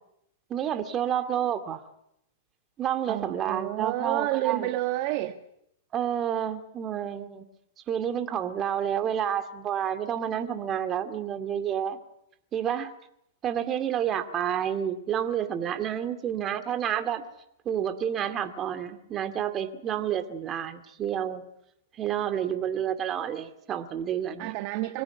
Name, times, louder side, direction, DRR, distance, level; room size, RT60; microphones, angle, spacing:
voice 1, 0.5-1.8 2.8-4.7 5.9-7.5 7.9-12.0 12.5-12.9 13.4-17.2 17.7-21.4 22.0-24.5, right 9 dB, 30° right, 2.3 m, -29 dB
voice 2, 3.1-5.4 24.4-25.0, right 16 dB, 50° right, 1.3 m, -29 dB
24.5 x 17.0 x 9.8 m
hypercardioid pair, 115°, 0 cm